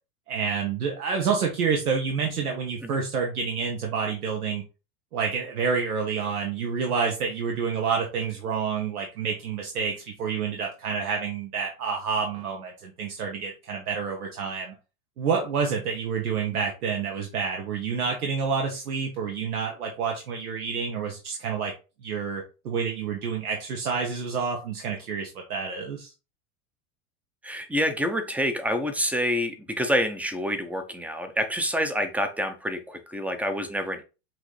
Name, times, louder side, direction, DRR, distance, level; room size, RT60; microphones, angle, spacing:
voice 1, 0.3-4.6 5.1-14.7 15.2-21.7 22.0-26.1, right 6 dB, 90° right, 1 dB, 1.2 m, -28 dB
voice 2, 27.4-34.0, equal, 5° right, 8 dB, 0.5 m, -27 dB
6.1 x 2.7 x 3.1 m, 0.31 s
hypercardioid pair, 110°, 43 cm